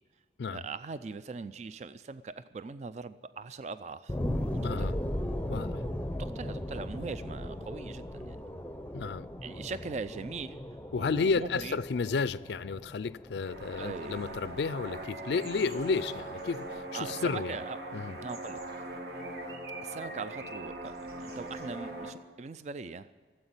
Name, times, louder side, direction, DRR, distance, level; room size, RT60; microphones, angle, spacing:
voice 1, 0.5-4.2 4.8-4.9 6.2-8.4 9.4-10.6 10.9-11.8 13.8-14.2 15.3-15.4 16.9-17.8 18.2-18.6 19.8-23.1, right 4 dB, 40° right, 0.3 m, -40 dB
sound 1, 4.1-15.1 15.6-15.7, left 1 dB, 10° left, 0.6 m, -37 dB
voice 2, 4.6-5.0 5.5-5.8 8.9-9.3 10.9-17.6 17.9-18.2, left 4 dB, 65° left, 0.4 m, -32 dB
sound 2, 13.4-22.1, right 2 dB, 55° right, 1.5 m, -40 dB
14.0 x 8.0 x 9.5 m
head